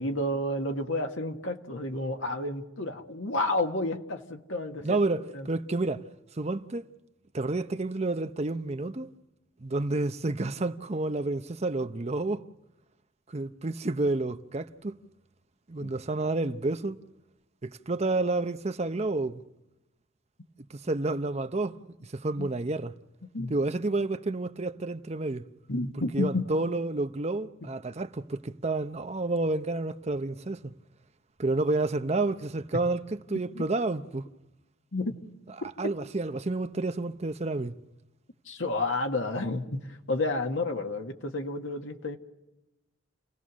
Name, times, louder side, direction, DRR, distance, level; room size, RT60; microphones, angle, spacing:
voice 1, 0.0-5.0 5.3-5.5 15.8-15.9 22.4-22.5 23.3-23.5 25.7-26.5 27.6-27.7 33.5-33.6 34.9-35.1 35.8-35.9 38.5-42.2, left 2 dB, 85° left, 1.7 m, -31 dB
voice 2, 4.8-6.0 6.3-6.9 7.3-9.1 9.6-12.4 13.3-15.0 15.7-17.0 17.6-19.4 20.7-21.8 22.1-22.9 23.5-25.4 26.1-30.7 31.4-34.3 35.8-37.8, right 2 dB, 35° right, 0.7 m, -30 dB
30.0 x 17.5 x 6.3 m
head